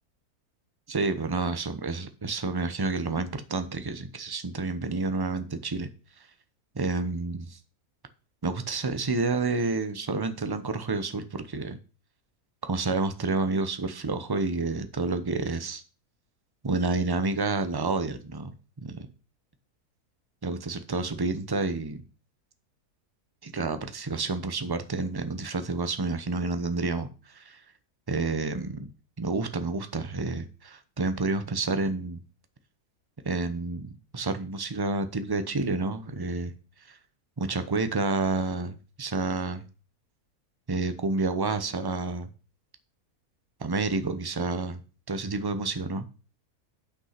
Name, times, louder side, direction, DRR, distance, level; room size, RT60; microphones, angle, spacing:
voice 1, 0.9-5.9 6.7-7.6 8.4-11.8 12.6-15.8 16.6-18.5 18.8-19.1 20.4-22.0 23.4-27.6 28.1-28.9 29.2-32.2 33.2-36.5 36.9-37.0 37.4-39.6 40.7-42.3 43.6-44.8 45.1-46.1, right 3 dB, 25° right, 10 dB, 0.6 m, -29 dB
8.4 x 6.2 x 5.8 m, 0.34 s
omnidirectional pair, 1.6 m